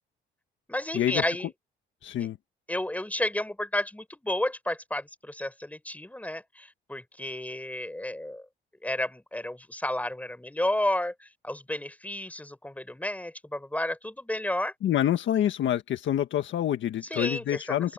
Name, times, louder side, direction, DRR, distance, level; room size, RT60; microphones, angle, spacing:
voice 1, 0.7-1.5 2.7-8.4 8.8-14.7 17.1-17.9, left 1 dB, 5° left, 5.9 m, -32 dB
voice 2, 2.0-2.4 14.8-17.9, left 11 dB, 70° left, 1.6 m, -27 dB
open air
cardioid pair, 90°, 20 cm